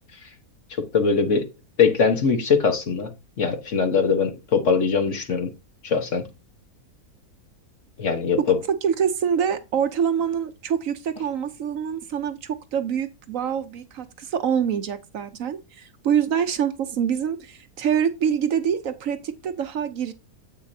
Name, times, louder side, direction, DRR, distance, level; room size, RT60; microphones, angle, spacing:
voice 1, 0.9-1.5 1.8-3.1 3.4-5.5 5.8-6.2 8.0-8.6, left 5 dB, 55° left, 1.5 m, -21 dB
voice 2, 8.8-20.1, right 8 dB, 65° right, 1.0 m, -25 dB
8.0 x 6.4 x 2.7 m
omnidirectional pair, 1.6 m